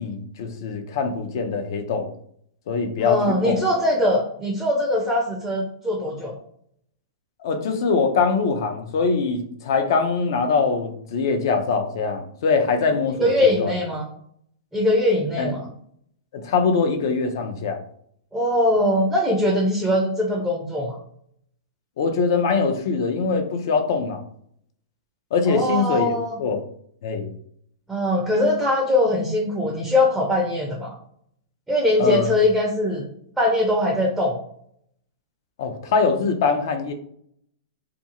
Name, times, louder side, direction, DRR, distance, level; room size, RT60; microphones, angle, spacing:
voice 1, 0.0-2.1 2.7-3.6 7.4-13.7 15.4-15.5 16.3-17.8 22.0-24.2 25.3-26.1 26.4-26.6 27.0-27.3 32.0-32.3 35.6-36.9, left 4 dB, 60° left, 6 dB, 0.5 m, -23 dB
voice 2, 3.0-6.4 13.2-14.1 14.7-15.7 18.3-21.0 25.5-26.4 27.9-31.0 31.7-33.1 33.4-34.4, left 1 dB, 5° right, 0 dB, 0.4 m, -21 dB
2.5 x 2.3 x 2.8 m, 0.67 s
hypercardioid pair, 135°, 3 cm